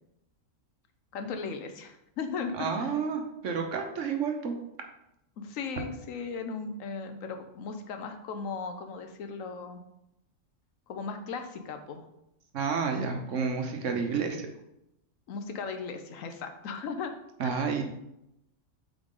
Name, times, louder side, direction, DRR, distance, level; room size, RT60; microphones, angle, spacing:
voice 1, 1.1-2.9 5.4-9.8 10.9-12.1 15.3-17.1 17.4-17.7, left 5 dB, 80° left, 7 dB, 1.1 m, -37 dB
voice 2, 2.6-4.5 12.5-14.5 17.4-17.9, right 5 dB, 70° right, 4 dB, 1.2 m, -30 dB
7.8 x 3.9 x 3.7 m, 0.85 s
omnidirectional pair, 1.4 m